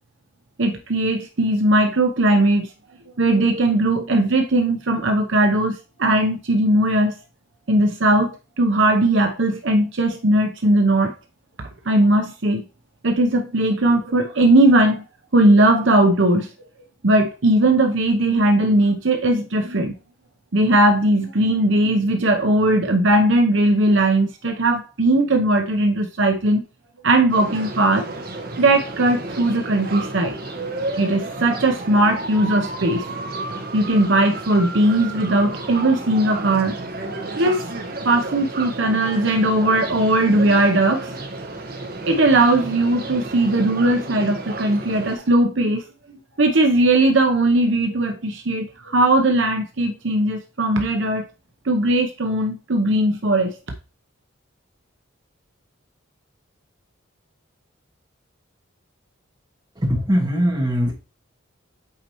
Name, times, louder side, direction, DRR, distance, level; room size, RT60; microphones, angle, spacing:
voice 1, 0.6-2.7 3.2-7.2 7.7-11.1 11.6-12.6 13.0-15.0 15.3-16.5 17.0-19.9 20.5-26.6 27.0-28.1 28.6-30.3 31.0-33.2 33.7-36.8 37.4-37.7 38.0-41.2 42.1-45.8 46.4-51.2 51.6-53.6, right 1 dB, 65° right, 0.8 m, -18 dB
sound 1, 27.3-45.2, right 2 dB, 45° right, 1.2 m, -32 dB
voice 2, 59.8-60.9, equal, 20° right, 2.0 m, -20 dB
8.5 x 4.3 x 3.0 m
head